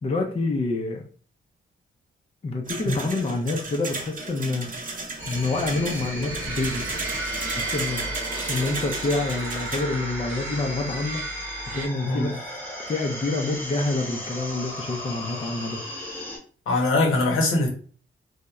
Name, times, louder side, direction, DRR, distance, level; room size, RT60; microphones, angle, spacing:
voice 1, 0.0-1.0 2.4-4.7 5.3-7.2 7.5-11.2 11.7-12.6 12.9-15.8, left 2 dB, 30° left, 2 dB, 0.4 m, -27 dB
sound 1, 2.7-9.8, right 3 dB, 40° right, 0.7 m, -35 dB
sound 2, 5.2-16.4, equal, 10° left, 1.0 m, -36 dB
sound 3, 6.3-11.9, right 3 dB, 75° right, 0.6 m, -34 dB
voice 2, 16.7-17.7, left 2 dB, 80° left, 1 dB, 0.8 m, -22 dB
2.9 x 2.1 x 2.3 m, 0.43 s
cardioid pair, 85°, 21 cm